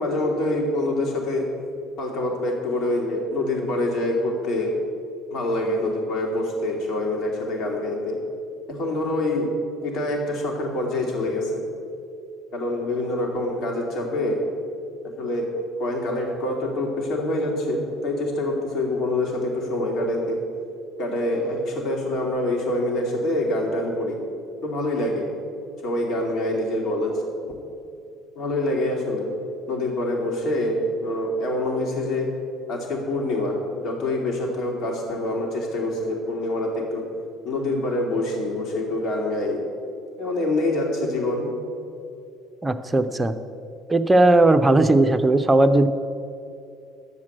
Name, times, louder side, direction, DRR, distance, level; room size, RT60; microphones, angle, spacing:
voice 1, 0.0-1.4 2.0-4.7 5.3-8.2 8.7-9.5 9.8-11.6 12.5-14.4 15.2-15.5 15.8-20.4 21.0-24.2 24.6-25.3 25.8-27.1 28.4-29.3 29.7-32.3 32.7-37.0 37.4-39.6 40.2-41.5, left 1 dB, 55° left, 1 dB, 2.1 m, -25 dB
voice 2, 42.6-43.3 43.9-45.9, right 2 dB, 15° right, 8 dB, 0.8 m, -17 dB
11.0 x 7.4 x 7.7 m, 2.5 s
hypercardioid pair, 60°, 0 cm